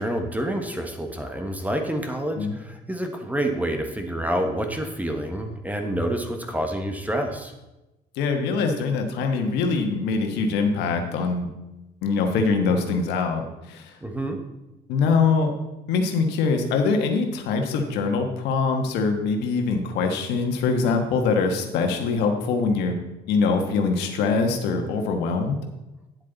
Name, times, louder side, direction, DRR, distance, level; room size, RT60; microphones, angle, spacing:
voice 1, 0.0-7.5 14.0-14.4, right 1 dB, 10° right, 4 dB, 1.2 m, -28 dB
voice 2, 8.2-11.5 12.0-13.9 14.9-15.5 15.9-23.0 23.3-25.6, left 4 dB, 85° left, 4 dB, 1.4 m, -23 dB
9.7 x 7.7 x 4.0 m, 0.99 s
cardioid pair, 110°, 17 cm